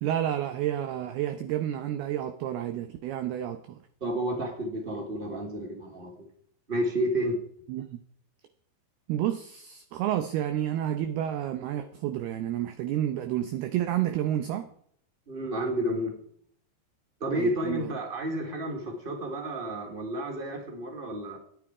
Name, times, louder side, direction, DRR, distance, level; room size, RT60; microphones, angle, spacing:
voice 1, 0.0-3.8 7.7-8.0 9.1-14.7 17.3-17.9, right 11 dB, 80° right, 2.3 m, -30 dB
voice 2, 4.0-6.1 6.7-7.4 15.3-16.1 17.2-21.4, equal, 15° right, 2.6 m, -31 dB
24.0 x 9.8 x 4.9 m
omnidirectional pair, 5.8 m